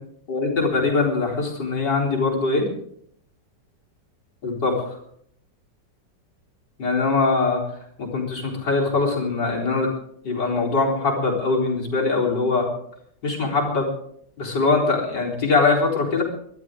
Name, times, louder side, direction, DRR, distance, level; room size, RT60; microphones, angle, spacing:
voice 1, 0.3-2.7 4.4-5.0 6.8-7.6 8.0-9.9 10.2-12.7 13.2-13.9 14.4-16.2, left 3 dB, 70° left, -2 dB, 4.7 m, -22 dB
23.5 x 13.0 x 3.8 m, 0.67 s
omnidirectional pair, 2.0 m